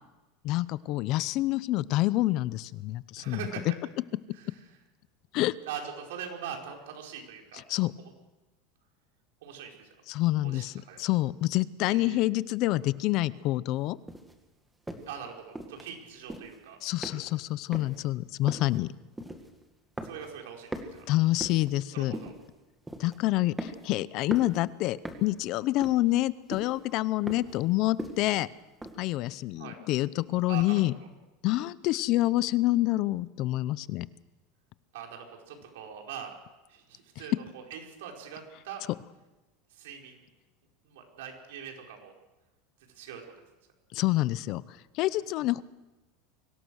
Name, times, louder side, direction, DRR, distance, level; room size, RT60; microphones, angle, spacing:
voice 1, 0.4-3.4 5.3-5.5 7.7-7.9 10.1-14.0 16.8-18.9 21.1-22.1 23.0-28.5 29.0-30.9 31.4-34.1 43.9-45.6, left 17 dB, 45° left, 18 dB, 0.6 m, -27 dB
voice 2, 3.2-3.7 4.3-4.6 5.6-7.6 8.0-8.1 9.4-9.9 10.4-11.1 11.9-12.2 15.0-16.8 20.0-21.1 21.9-22.3 29.6-29.8 30.5-30.8 34.9-36.3 36.7-38.8 39.7-40.2 40.8-42.1 42.9-43.3 45.0-45.1, right 8 dB, 85° right, 1 dB, 5.0 m, -42 dB
sound 1, 14.1-14.3 14.9-15.1 15.6-15.9 16.2-16.6 17.0-17.5 17.7-18.0 18.5-18.8 19.2-19.6 20.0-20.4 20.7-21.7 22.1-22.5 22.9-23.2 23.6-24.0 24.3-24.6 25.0-25.4 25.8-26.2 26.5-26.8 27.3-27.6 28.0-28.3 28.8-29.0, right 1 dB, 5° right, 2.0 m, -39 dB
24.0 x 18.0 x 6.4 m, 1.1 s
supercardioid pair, 155°, 0 cm